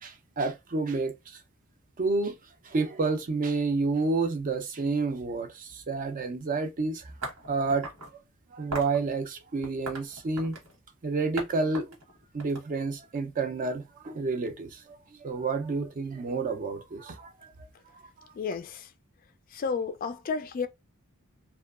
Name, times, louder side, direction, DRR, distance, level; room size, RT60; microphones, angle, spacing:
voice 1, 0.0-1.4 2.0-2.4 2.6-7.1 7.5-7.9 8.1-8.2 8.5-10.6 11.0-12.0 12.3-17.3, right 3 dB, 40° right, 0.4 m, -29 dB
sound 1, 7.2-8.1 8.7-9.0 9.6-10.8 11.4-11.5 11.7-13.2, right 2 dB, 85° right, 1.2 m, -38 dB
voice 2, 18.4-18.9 19.5-20.7, left 5 dB, 40° left, 0.3 m, -31 dB
2.7 x 2.2 x 2.3 m
head